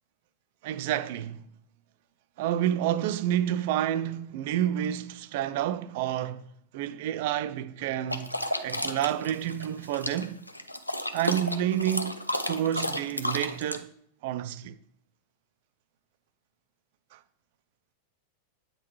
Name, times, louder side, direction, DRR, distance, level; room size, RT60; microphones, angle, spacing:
voice 1, 0.6-1.4 2.4-6.5 6.7-8.3 8.6-10.4 11.1-12.1 12.5-13.9 14.2-14.8, right 11 dB, 50° right, 0.3 m, -29 dB
sound 1, 8.1-13.8, left 1 dB, 85° left, 0.4 m, -32 dB
8.3 x 3.7 x 3.1 m
figure-of-eight pair, 90°, 0 cm